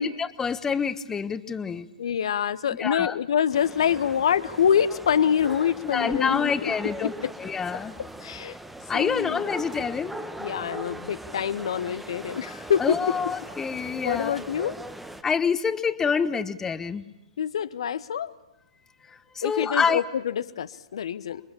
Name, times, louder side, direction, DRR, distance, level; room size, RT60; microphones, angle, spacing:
voice 1, 0.0-1.9 2.8-3.2 5.9-7.1 7.4-7.9 8.9-10.1 12.8-14.4 15.2-17.0 19.3-20.0, left 6 dB, 15° left, 12 dB, 1.3 m, -27 dB
voice 2, 2.0-6.7 7.0-7.3 7.7-8.6 8.9-9.7 10.4-13.2 14.0-14.7 17.4-18.3 19.4-21.4, left 8 dB, 60° left, 13 dB, 1.1 m, -26 dB
sound 1, 3.5-15.2, right 1 dB, 5° right, 1.4 m, -40 dB
28.5 x 23.5 x 8.7 m, 0.91 s
figure-of-eight pair, 110°, 3 cm